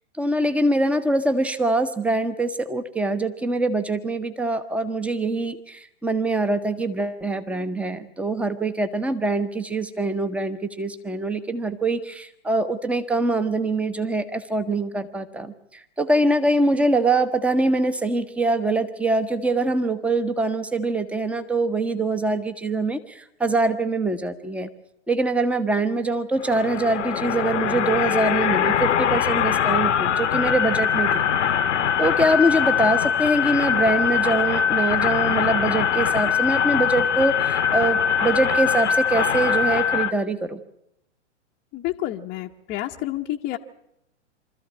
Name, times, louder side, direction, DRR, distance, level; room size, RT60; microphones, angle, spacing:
voice 1, 0.2-24.7 25.1-31.2 32.0-40.6, right 2 dB, 5° right, 11 dB, 1.0 m, -24 dB
sound 1, 26.4-40.1, left 8 dB, 80° left, 1.0 m, -22 dB
voice 2, 41.7-43.6, left 15 dB, 25° left, 1 dB, 0.9 m, -29 dB
25.0 x 13.5 x 8.7 m, 0.81 s
hypercardioid pair, 120°, 36 cm